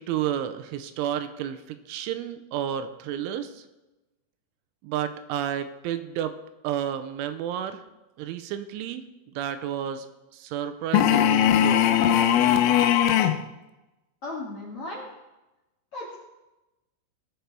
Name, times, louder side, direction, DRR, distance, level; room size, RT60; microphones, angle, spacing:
voice 1, 0.0-3.6 4.8-6.3 6.6-7.8 8.2-10.1 10.3-11.9, right 10 dB, 85° right, 9 dB, 3.1 m, -31 dB
sound 1, 10.9-13.4, left 10 dB, 85° left, 3.3 m, -20 dB
voice 2, 14.2-15.1 15.9-16.2, left 2 dB, 55° left, -4 dB, 1.6 m, -36 dB
19.0 x 6.7 x 4.6 m, 1.0 s
omnidirectional pair, 5.6 m